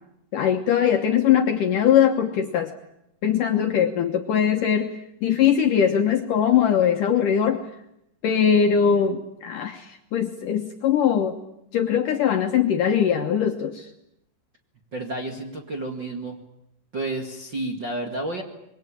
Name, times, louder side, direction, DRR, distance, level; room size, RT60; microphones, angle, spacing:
voice 1, 0.3-2.7 3.2-7.7 8.2-11.4 11.7-13.9, left 8 dB, 65° left, 4 dB, 2.2 m, -21 dB
voice 2, 14.9-16.4 16.9-18.4, right 2 dB, 35° right, 3 dB, 1.9 m, -30 dB
26.0 x 22.5 x 8.6 m, 0.80 s
omnidirectional pair, 5.0 m